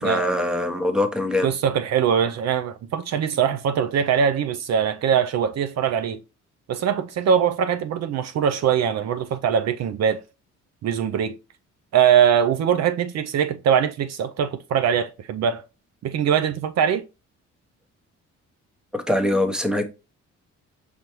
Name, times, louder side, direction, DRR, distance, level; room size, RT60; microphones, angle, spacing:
voice 1, 0.0-1.5 18.9-19.8, left 1 dB, 5° right, 0.8 m, -23 dB
voice 2, 1.4-6.2 6.7-10.2 10.8-11.4 11.9-15.6 16.0-17.0, right 8 dB, 60° right, 0.5 m, -22 dB
5.3 x 3.4 x 3.0 m
cardioid pair, 90°, 30 cm